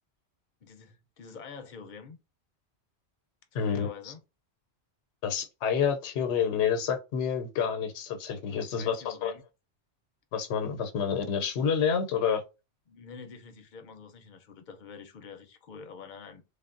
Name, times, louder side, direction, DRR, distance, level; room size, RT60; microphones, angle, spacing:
voice 1, 0.6-2.2 3.5-4.2 8.5-9.4 12.9-16.4, left 5 dB, 55° left, 0.6 m, -46 dB
voice 2, 3.5-4.1 5.2-9.3 10.3-12.4, left 7 dB, 90° left, 0.9 m, -28 dB
3.3 x 2.0 x 2.4 m
omnidirectional pair, 1.1 m